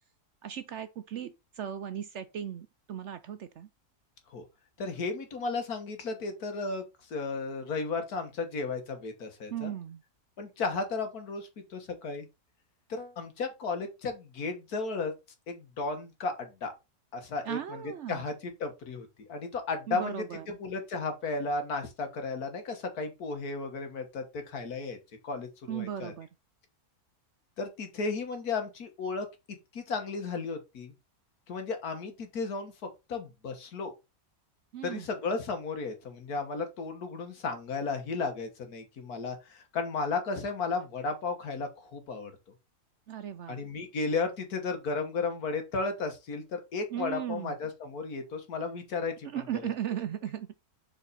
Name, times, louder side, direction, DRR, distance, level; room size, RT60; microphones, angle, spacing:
voice 1, 0.4-3.7 9.5-10.0 17.4-18.2 19.9-20.6 25.7-26.3 34.7-35.1 43.1-43.6 46.9-47.5 49.3-50.5, right 10 dB, 65° right, 0.7 m, -36 dB
voice 2, 4.8-9.7 10.4-12.3 12.9-15.1 15.5-16.7 17.1-17.8 18.1-25.0 25.2-26.1 27.6-30.9 31.5-32.7 33.1-33.9 34.8-42.3 43.5-49.3, left 4 dB, 75° left, 1.9 m, -34 dB
6.8 x 4.5 x 4.1 m
omnidirectional pair, 1.6 m